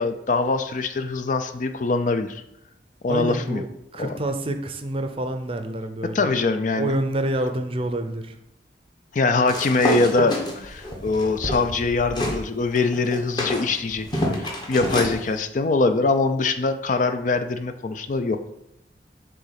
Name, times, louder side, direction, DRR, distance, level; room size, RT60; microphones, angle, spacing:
voice 1, 0.0-2.4 3.0-3.6 4.0-4.1 6.1-6.9 9.1-14.1 14.3-18.5, left 3 dB, 45° left, 9 dB, 0.4 m, -23 dB
voice 2, 3.1-3.7 3.9-6.3 6.7-8.3, right 1 dB, 30° right, 7 dB, 0.6 m, -27 dB
sound 1, 9.5-12.4 12.7-15.2, left 1 dB, 25° left, 1.1 m, -27 dB
6.7 x 3.7 x 5.8 m, 0.80 s
head